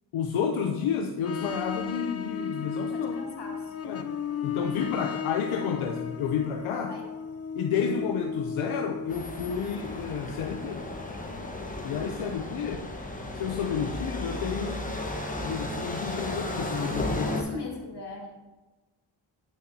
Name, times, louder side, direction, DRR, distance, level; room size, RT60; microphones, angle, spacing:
voice 1, 0.1-3.2 3.8-4.1 4.4-6.9 7.5-10.8 11.8-12.8 13.3-15.0 15.4-17.3, left 7 dB, 85° left, 3 dB, 0.6 m, -31 dB
sound 1, 1.2-11.5 11.9-12.0 15.2-15.3 15.6-15.7 16.0-16.1, left 6 dB, 35° left, 0.4 m, -35 dB
voice 2, 2.9-3.8 5.1-5.3 6.9-7.1 17.2-18.3, left 2 dB, 55° left, 1 dB, 1.7 m, -40 dB
sound 2, 9.1-17.4, left 1 dB, 15° left, 1.1 m, -34 dB
8.4 x 6.2 x 2.7 m, 1.2 s
cardioid pair, 45°, 48 cm